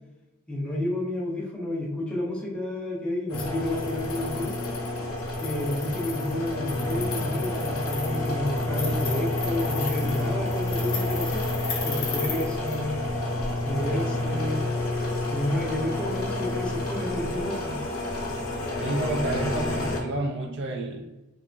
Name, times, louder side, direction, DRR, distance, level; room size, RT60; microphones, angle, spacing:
voice 1, 0.5-4.5 5.4-11.4 11.8-13.0 13.6-14.6 15.3-17.8, left 1 dB, 5° left, -6 dB, 0.6 m, -30 dB
sound 1, 3.3-20.0, left 2 dB, 85° left, 0.7 m, -29 dB
voice 2, 18.8-21.0, right 2 dB, 60° right, 2 dB, 0.4 m, -29 dB
3.2 x 2.0 x 2.5 m, 1.0 s
head